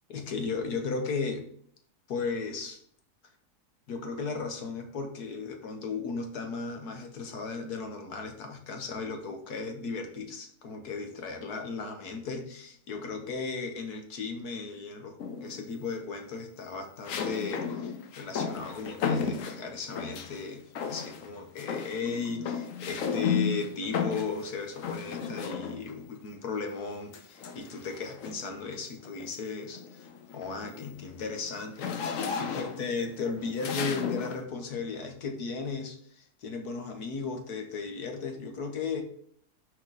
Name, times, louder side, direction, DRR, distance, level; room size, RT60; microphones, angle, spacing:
voice 1, 0.1-1.4 2.1-2.8 3.9-15.2 15.4-39.0, left 4 dB, 80° left, 4 dB, 1.7 m, -36 dB
sound 1, 15.2-15.7 17.1-20.4 20.8-21.3 21.6-26.0 27.1-28.5 29.0-29.3 29.7-34.4, left 6 dB, 65° left, 1.1 m, -34 dB
6.2 x 5.4 x 4.0 m, 0.62 s
omnidirectional pair, 1.7 m